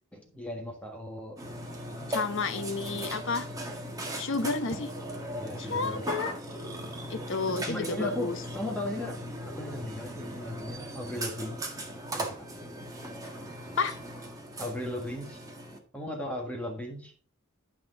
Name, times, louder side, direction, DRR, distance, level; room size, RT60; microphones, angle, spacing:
voice 1, 0.1-1.4 5.3-6.3 7.5-9.2 9.6-11.6 12.1-12.5 14.6-15.4 15.9-17.1, left 1 dB, 5° left, 1 dB, 1.5 m, -37 dB
Burping eructation, 1.4-15.8, right 1 dB, 15° right, 1.8 m, -38 dB
voice 2, 2.1-3.5 4.2-4.9 5.6-6.3 7.1-8.4 13.8-14.0, left 4 dB, 55° left, 11 dB, 0.9 m, -31 dB
12.0 x 6.0 x 3.9 m, 0.42 s
head